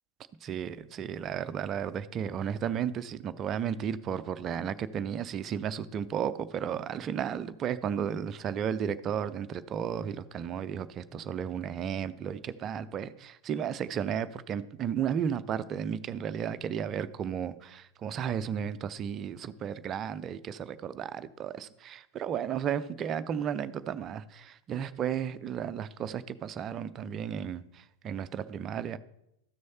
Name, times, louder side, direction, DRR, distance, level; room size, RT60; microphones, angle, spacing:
voice 1, 0.4-29.0, right 8 dB, 30° right, 13 dB, 0.5 m, -34 dB
13.5 x 6.3 x 4.3 m, 0.82 s
figure-of-eight pair, 90°, 0 cm